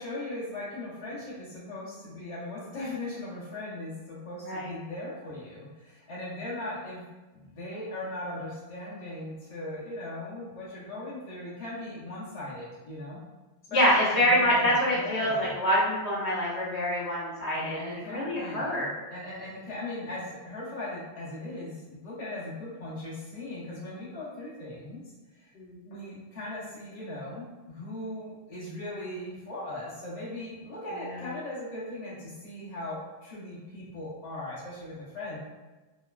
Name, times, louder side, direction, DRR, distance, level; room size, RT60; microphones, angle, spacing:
voice 1, 0.0-7.0 7.3-13.2 14.0-15.5 17.5-25.0 25.4-25.5 25.8-35.4, left 1 dB, 40° left, -8 dB, 0.9 m, -39 dB
voice 2, 13.7-18.9 25.5-25.7, equal, 70° left, -7 dB, 1.0 m, -26 dB
3.0 x 2.1 x 2.3 m, 1.2 s
omnidirectional pair, 1.2 m